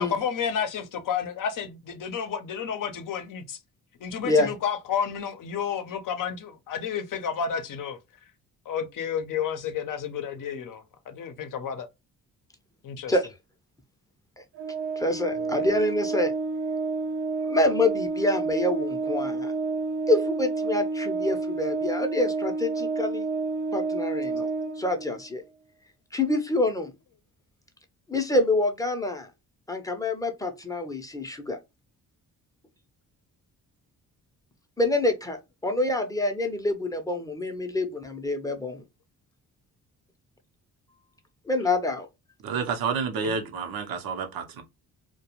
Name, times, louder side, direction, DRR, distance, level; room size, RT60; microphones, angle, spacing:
voice 1, 0.0-3.6 4.0-8.0 8.7-11.9 12.8-13.2 15.3-15.7 43.2-43.3, left 7 dB, 60° left, 0.7 m, -31 dB
Organ, 14.6-25.3, right 3 dB, 40° right, 0.5 m, -29 dB
voice 2, 15.0-16.3 17.5-19.5 20.1-23.2 23.7-24.5 24.8-25.4 26.1-26.9 28.1-29.3 29.7-31.6 34.8-38.8 41.5-42.1, left 2 dB, 10° left, 0.6 m, -26 dB
voice 3, 42.4-44.6, right 5 dB, 75° right, 0.7 m, -29 dB
2.3 x 2.2 x 2.9 m
cardioid pair, 70°, 36 cm